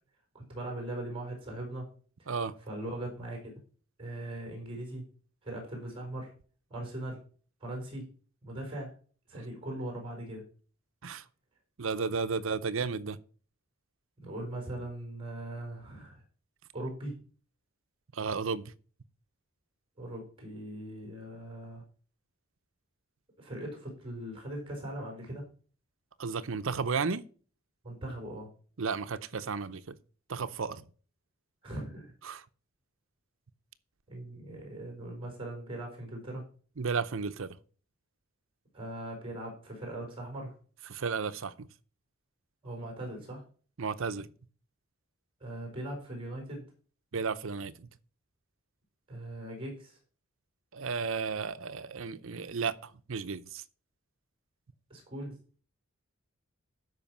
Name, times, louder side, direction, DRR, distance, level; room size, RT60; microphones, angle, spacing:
voice 1, 0.3-1.9 2.2-2.3 2.6-3.5 4.0-5.1 5.4-6.3 6.7-7.2 7.6-8.1 8.4-8.9 9.3-10.4 12.4-12.5 14.2-16.2 16.7-17.2 20.0-21.8 23.4-25.5 27.8-28.5 31.6-32.1 34.1-36.5 38.7-40.6 42.6-43.5 45.4-46.7 49.1-50.0 54.9-55.3, right 1 dB, 25° right, 4.5 m, -40 dB
voice 2, 11.8-13.2 18.1-18.7 26.2-27.2 28.8-29.9 30.3-30.8 32.3-32.4 36.8-37.6 40.9-41.7 43.8-44.3 47.1-47.9 50.7-53.6, right 5 dB, 65° right, 0.7 m, -33 dB
12.5 x 5.1 x 6.0 m
head